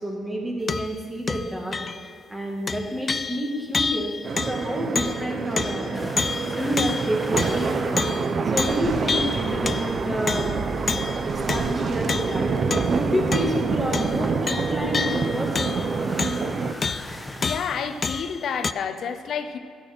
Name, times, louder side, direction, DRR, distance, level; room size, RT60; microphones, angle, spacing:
voice 1, 0.0-4.1 4.5-5.9 6.5-8.1 8.5-10.5 11.2-16.2, equal, 10° right, -1 dB, 2.2 m, -29 dB
sound 1, 0.7-1.0 1.3-2.1 2.7-8.3 8.6-10.0 10.3-13.0 13.3-13.7 13.9-16.6 16.8-17.1 17.4-18.7, left 5 dB, 35° left, 0.3 m, -29 dB
sound 2, 4.2-16.7, right 5 dB, 50° right, 0.7 m, -27 dB
sound 3, 5.9-18.3, left 1 dB, 10° left, 1.0 m, -40 dB
voice 2, 17.4-19.6, left 7 dB, 65° left, 9 dB, 0.8 m, -30 dB
8.7 x 8.2 x 6.2 m, 2.4 s
cardioid pair, 90°, 0 cm